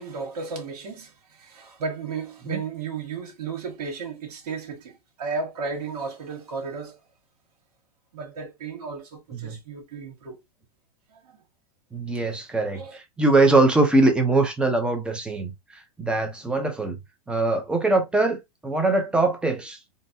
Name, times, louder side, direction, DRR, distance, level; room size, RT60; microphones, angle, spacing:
voice 1, 0.0-7.0 8.1-10.4 11.1-11.4 12.7-13.0, right 4 dB, 80° right, 1.3 m, -34 dB
voice 2, 11.9-15.5 16.0-17.0 17.3-19.8, right 2 dB, 5° right, 0.6 m, -22 dB
3.8 x 2.1 x 2.6 m
supercardioid pair, 150°, 20 cm